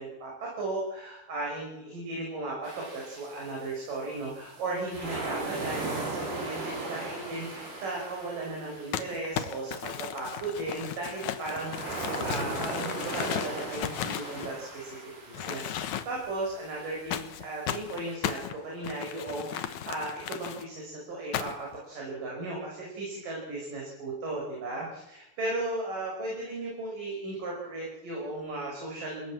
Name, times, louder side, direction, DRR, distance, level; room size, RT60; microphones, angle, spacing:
voice 1, 0.0-29.3, right 2 dB, 50° right, -2 dB, 7.3 m, -36 dB
sound 1, 2.6-18.1, right 2 dB, 75° right, 8.7 m, -39 dB
Crumpling crinkling, 8.9-15.0 15.3-16.3 17.1-20.6 21.3-21.8, left 10 dB, 65° left, 1.9 m, -36 dB
29.5 x 17.0 x 7.5 m, 0.94 s
omnidirectional pair, 4.9 m